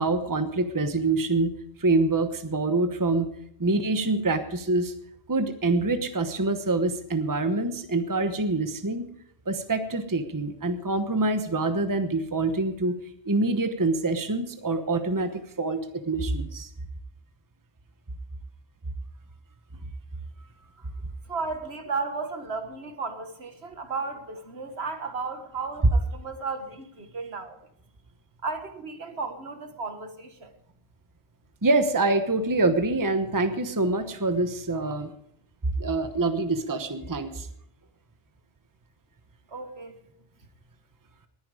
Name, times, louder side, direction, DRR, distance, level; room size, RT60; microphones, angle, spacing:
voice 1, 0.0-1.5 1.8-3.3 3.6-4.9 5.3-9.1 9.5-13.0 13.3-16.7 31.6-35.1 35.8-37.5, right 2 dB, 20° right, 9 dB, 1.0 m, -25 dB
voice 2, 21.3-27.6 28.4-30.5 39.5-40.0, right 4 dB, 70° right, 8 dB, 1.8 m, -34 dB
19.5 x 10.0 x 4.9 m, 0.72 s
omnidirectional pair, 1.1 m